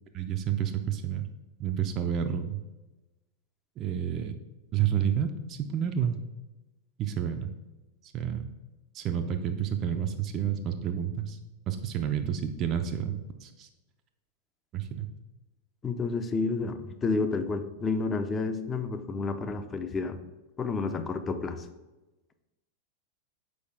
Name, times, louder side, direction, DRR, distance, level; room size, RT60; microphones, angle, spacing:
voice 1, 0.1-1.2 1.6-2.6 3.8-4.3 4.7-6.2 7.0-7.5 8.0-8.5 8.9-11.4 11.7-13.7 14.7-15.1, right 9 dB, 35° right, 7 dB, 0.4 m, -30 dB
voice 2, 15.8-20.2 20.6-21.7, left 4 dB, 20° left, 9 dB, 0.5 m, -30 dB
6.3 x 4.9 x 3.3 m, 1.1 s
figure-of-eight pair, 90°, 0 cm